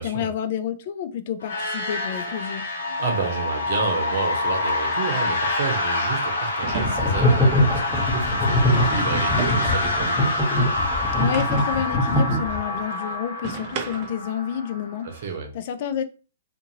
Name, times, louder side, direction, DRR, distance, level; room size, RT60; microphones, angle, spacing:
voice 1, 0.0-2.6 11.1-15.1 15.5-16.0, left 9 dB, 50° left, 0.3 m, -29 dB
sound 1, 1.4-15.1, left 2 dB, 65° left, 0.9 m, -26 dB
voice 2, 3.0-10.4 15.0-15.5, right 5 dB, 55° right, 0.9 m, -30 dB
sound 2, 4.4-4.6 6.6-7.4 9.4-10.0 11.3-11.9 13.4-14.3, right 6 dB, 40° right, 0.4 m, -34 dB
sound 3, 6.7-12.8, left 1 dB, 10° left, 1.1 m, -22 dB
2.6 x 2.5 x 2.7 m
figure-of-eight pair, 120°, 0 cm